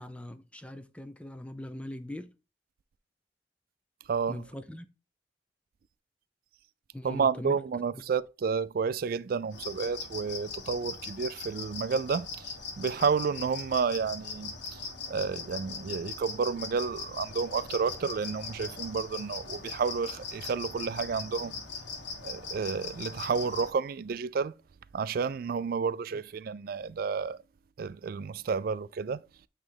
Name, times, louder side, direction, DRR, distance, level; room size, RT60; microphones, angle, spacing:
voice 1, 0.0-2.3 4.3-4.9 6.9-7.6 7.9-8.0, left 1 dB, 5° left, 0.5 m, -41 dB
voice 2, 4.1-4.4 7.0-14.8 15.1-21.6 22.2-24.5 24.9-27.4 27.8-29.2, right 5 dB, 55° right, 0.3 m, -31 dB
sound 1, 9.5-23.7, left 4 dB, 90° left, 1.5 m, -40 dB
8.9 x 3.2 x 3.8 m
head